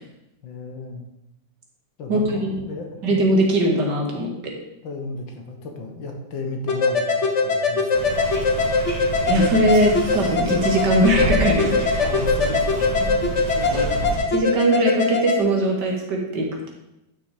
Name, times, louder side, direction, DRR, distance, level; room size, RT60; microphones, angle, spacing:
voice 1, 0.4-1.0 2.0-3.0 4.8-8.1 12.0-13.4 13.6-14.1, left 3 dB, 75° left, 3 dB, 2.2 m, -34 dB
voice 2, 2.1-2.5 3.0-4.3 8.7-8.8 9.3-12.0 13.5-13.8 14.3-16.7, right 1 dB, 60° right, 0 dB, 2.5 m, -20 dB
sound 1, 6.7-15.4, left 4 dB, 45° left, 1.2 m, -22 dB
sound 2, 7.9-14.2, right 2 dB, 40° right, 3.5 m, -29 dB
11.5 x 6.3 x 5.0 m, 0.90 s
omnidirectional pair, 2.1 m